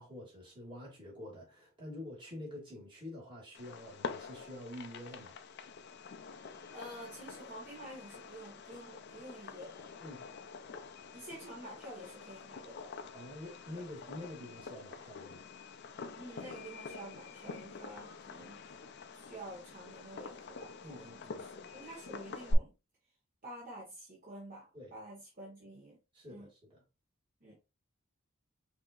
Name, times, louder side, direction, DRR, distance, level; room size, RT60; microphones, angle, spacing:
voice 1, 0.0-5.4 10.0-10.2 13.1-15.4 20.8-21.4 24.7-24.9 26.1-26.8, left 1 dB, 25° right, 2.3 m, -47 dB
Fireworks, 3.5-22.5, left 4 dB, 55° left, 0.5 m, -46 dB
voice 2, 6.7-9.8 11.1-12.9 16.1-18.6 19.2-21.4 21.7-22.7 23.4-24.6 24.9-26.0 26.3-26.5 27.4-27.5, right 1 dB, 40° right, 1.5 m, -49 dB
5.7 x 2.9 x 2.5 m
head